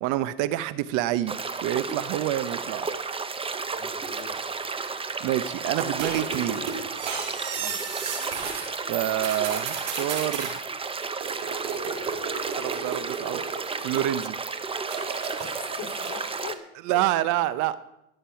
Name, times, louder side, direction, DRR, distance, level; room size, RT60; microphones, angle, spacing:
voice 1, 0.0-1.3 1.6-2.9 5.2-6.7 8.9-10.6 12.6-13.4 13.8-14.4 16.8-17.8, right 13 dB, 60° right, 16 dB, 0.7 m, -27 dB
sound 1, 1.3-16.5, right 4 dB, 15° right, 0.8 m, -33 dB
voice 2, 3.7-4.4 7.5-7.8 15.8-16.6 16.9-17.0, left 8 dB, 45° left, 4 dB, 2.8 m, -41 dB
sound 2, 5.8-8.7 8.9-10.5 11.2-14.2 14.8-16.4, right 6 dB, 80° right, 3.5 m, -34 dB
19.5 x 6.7 x 5.7 m, 0.86 s
supercardioid pair, 105°, 34 cm